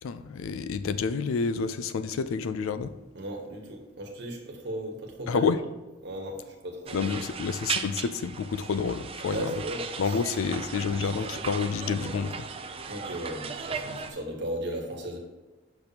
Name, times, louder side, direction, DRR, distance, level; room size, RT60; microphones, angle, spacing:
voice 1, 0.0-2.9 5.3-5.6 6.9-9.5 10.0-12.5, left 5 dB, 90° left, 13 dB, 0.4 m, -29 dB
voice 2, 3.1-5.5 6.0-7.1 9.3-10.2 12.9-15.2, right 1 dB, 60° right, 1 dB, 1.3 m, -36 dB
sound 1, 6.9-14.1, right 5 dB, 30° right, 0.4 m, -37 dB
6.8 x 6.0 x 2.8 m, 1.1 s
head